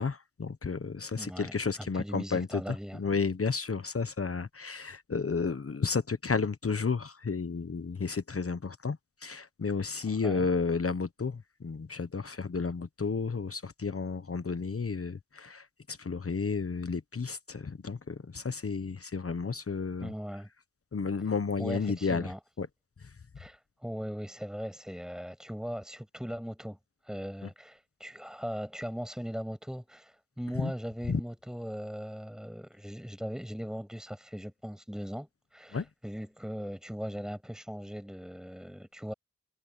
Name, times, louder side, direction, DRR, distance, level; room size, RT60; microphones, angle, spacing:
voice 1, 0.0-2.6 3.0-9.0 9.2-20.1 20.9-22.3 22.6-22.7 30.5-30.7 31.1-31.2 35.7-35.8, left 5 dB, 45° left, 1.2 m, -32 dB
voice 2, 1.2-3.0 10.1-10.5 20.0-20.5 21.6-22.4 23.4-26.8 27.0-39.1, equal, ahead, 7.6 m, -39 dB
cardioid pair, 55°, 30 cm